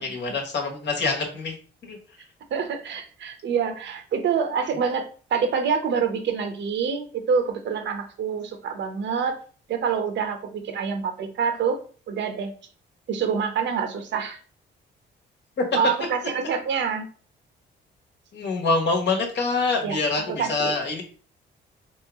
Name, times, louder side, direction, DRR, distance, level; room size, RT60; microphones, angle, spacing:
voice 1, 0.0-1.5 1.9-2.0 15.6-15.7 18.3-21.0, left 3 dB, 60° left, 2 dB, 1.2 m, -25 dB
voice 2, 2.5-9.4 9.7-11.8 12.1-12.5 13.1-14.4 15.7-17.1 19.8-20.0 20.3-20.7, right 6 dB, 65° right, 7 dB, 0.8 m, -26 dB
3.5 x 3.0 x 3.5 m, 0.41 s
cardioid pair, 90°, 20 cm